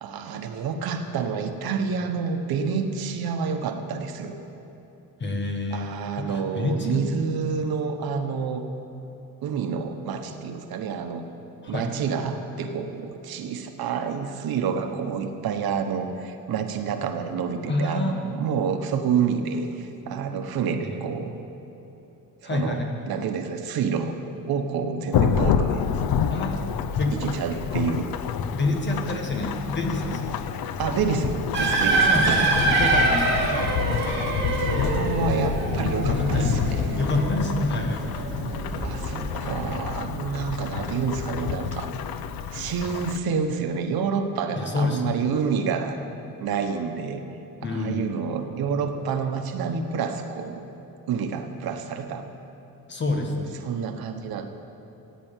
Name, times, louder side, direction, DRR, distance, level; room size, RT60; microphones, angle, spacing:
voice 1, 0.0-4.4 5.7-8.6 9.4-11.3 11.7-21.3 22.4-22.8 23.1-24.2 24.5-25.8 27.1-28.1 30.8-32.3 34.6-37.1 38.8-41.9 42.5-46.0 46.4-47.2 47.6-50.6 51.1-52.3 53.6-54.5, right 6 dB, 85° right, 6 dB, 1.3 m, -28 dB
voice 2, 5.2-7.0 11.6-11.9 17.7-18.2 20.8-21.0 22.4-22.9 26.3-26.7 27.0-27.2 28.5-30.5 32.0-33.8 34.8-35.0 36.0-38.1 44.5-45.3 47.6-48.1 52.9-53.6, left 2 dB, 30° left, 2 dB, 1.7 m, -28 dB
Thunderstorm / Rain, 25.1-43.2, left 7 dB, 75° left, 0.8 m, -28 dB
sound 1, 31.5-39.7, right 2 dB, 30° right, 2.7 m, -25 dB
16.0 x 9.3 x 9.1 m, 3.0 s
wide cardioid pair, 180°, 35 cm